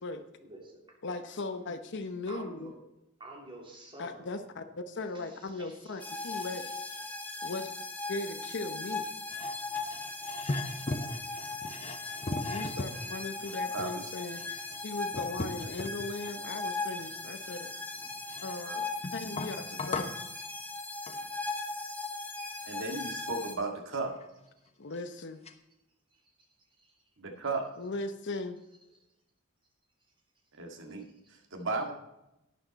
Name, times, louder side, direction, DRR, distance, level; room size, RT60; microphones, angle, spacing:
voice 1, 0.4-0.9 2.3-2.7 3.2-4.3 5.1-6.7 7.0-7.5 10.8-10.9 21.9-22.0 22.5-22.7 26.1-26.2 31.1-31.2, right 2 dB, 25° right, 0 dB, 2.9 m, -51 dB
voice 2, 1.0-2.7 4.0-6.7 7.4-7.7 8.1-9.1 12.4-17.7 18.4-20.2 24.8-25.4 27.8-28.6, left 3 dB, 55° left, 8 dB, 0.9 m, -38 dB
sound 1, 6.0-23.5, left 3 dB, 10° left, 1.3 m, -38 dB
sound 2, 9.3-16.3 16.9-18.6 19.0-20.3 21.1-21.3 23.8-23.9 24.1-24.3 24.9-25.0 25.4-25.5, left 2 dB, 30° left, 1.0 m, -39 dB
voice 3, 22.7-24.1 27.4-27.6 30.6-31.9, right 3 dB, 60° right, 4 dB, 1.9 m, -35 dB
12.0 x 9.0 x 4.1 m, 0.90 s
head